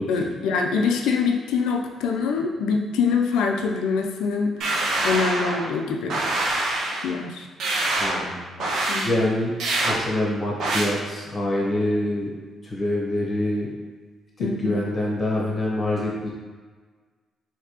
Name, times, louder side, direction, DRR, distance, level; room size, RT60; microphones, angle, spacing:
voice 1, 0.1-6.2 7.0-7.5 8.6-9.1 14.4-14.8, left 5 dB, 90° left, 2 dB, 0.4 m, -25 dB
sound 1, 4.6-5.7 6.1-7.1 7.6-8.3 8.6-9.1 9.6-10.0 10.6-10.9, right 2 dB, 70° right, 0.5 m, -24 dB
voice 2, 8.0-8.5 9.0-9.5 9.8-12.3 12.6-13.7 14.4-16.3, left 1 dB, 30° left, -3 dB, 1.0 m, -25 dB
3.3 x 2.8 x 2.9 m, 1.4 s
cardioid pair, 90°, 0 cm